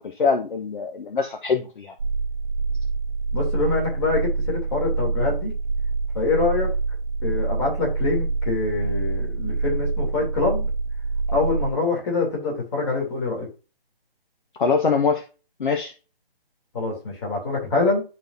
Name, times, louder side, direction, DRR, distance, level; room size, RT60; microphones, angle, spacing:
voice 1, 0.0-1.9 14.6-15.2 15.6-15.9, left 5 dB, 55° left, 4 dB, 1.1 m, -23 dB
sound 1, 2.0-11.7, right 4 dB, 60° right, 0.8 m, -26 dB
voice 2, 3.3-5.5 6.1-6.7 7.2-10.7 11.3-13.5 16.7-18.0, left 3 dB, 30° left, -2 dB, 3.1 m, -25 dB
11.0 x 4.2 x 2.7 m, 0.32 s
hypercardioid pair, 165°, 30 cm